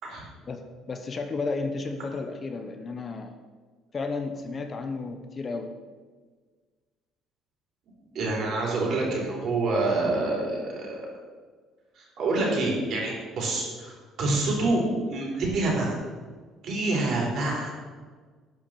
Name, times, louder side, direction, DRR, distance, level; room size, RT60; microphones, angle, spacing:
voice 1, 0.4-3.4 3.9-5.7, left 3 dB, 25° left, 7 dB, 0.7 m, -33 dB
voice 2, 8.1-11.0 12.0-15.9 16.6-17.7, right 2 dB, 50° right, -2 dB, 3.5 m, -27 dB
10.5 x 5.0 x 7.4 m, 1.5 s
cardioid pair, 160°, 0 cm